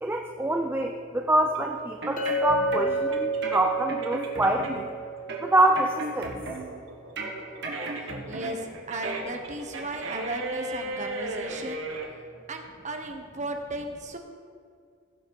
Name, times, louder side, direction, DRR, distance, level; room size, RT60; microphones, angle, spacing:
voice 1, 0.0-4.9 5.4-6.3, right 1 dB, 10° right, 3 dB, 0.5 m, -25 dB
sound 1, 1.5-4.9 5.3-12.1, right 2 dB, 80° right, 1.3 m, -36 dB
sound 2, 1.8-3.1 3.4-4.9 5.3-6.8 7.2-8.7 9.0-9.2, right 2 dB, 60° right, 1.7 m, -36 dB
Chink clink, 2.2-6.4, right 2 dB, 40° left, 1.2 m, -31 dB
voice 2, 8.3-11.8 12.5-14.2, right 2 dB, 35° right, 4 dB, 1.1 m, -35 dB
16.5 x 5.7 x 4.7 m, 2.2 s
head